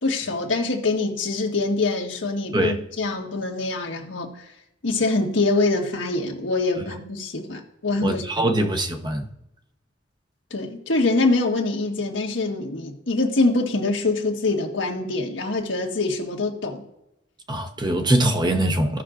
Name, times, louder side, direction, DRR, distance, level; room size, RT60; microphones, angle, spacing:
voice 1, 0.0-4.5 4.8-8.6 10.5-16.8, left 3 dB, 85° left, 1.6 m, -24 dB
voice 2, 8.0-9.3 17.5-19.0, right 1 dB, 25° right, 0.9 m, -22 dB
16.0 x 6.0 x 2.5 m
head